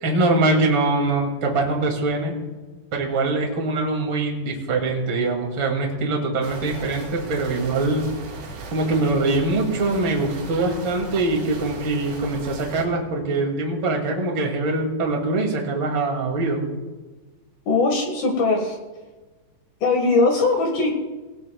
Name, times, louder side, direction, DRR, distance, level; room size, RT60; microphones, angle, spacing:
voice 1, 0.0-2.3 2.9-8.1 8.7-16.7, right 2 dB, 35° right, 1 dB, 2.4 m, -23 dB
sound 1, 6.4-12.8, right 3 dB, 80° right, 6.1 m, -37 dB
voice 2, 17.7-18.8 19.8-20.9, left 3 dB, 60° left, 2 dB, 3.1 m, -20 dB
21.5 x 18.0 x 2.3 m, 1.2 s
omnidirectional pair, 5.3 m